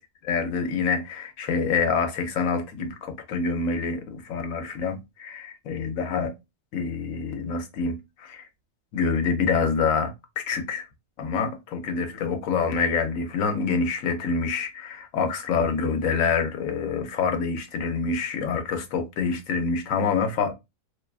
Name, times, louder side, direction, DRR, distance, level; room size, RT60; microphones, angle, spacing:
voice 1, 0.2-6.3 6.7-8.4 8.9-10.8 11.2-20.5, left 5 dB, 85° left, 1.0 m, -26 dB
2.6 x 2.2 x 2.3 m
omnidirectional pair, 1.4 m